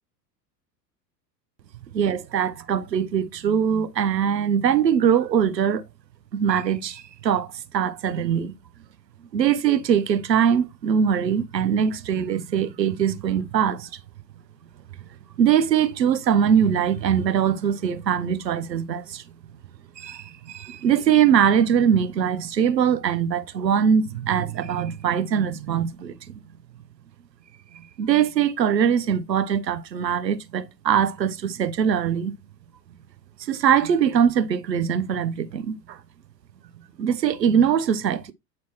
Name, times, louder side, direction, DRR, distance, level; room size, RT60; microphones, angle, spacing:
voice 1, 1.9-5.8 6.3-7.5 7.7-8.5 9.3-13.9 15.4-19.2 20.0-26.2 28.0-32.3 33.5-36.0 37.0-38.3, right 8 dB, 80° right, 0.8 m, -22 dB
8.5 x 4.3 x 3.0 m
figure-of-eight pair, 80°, 50 cm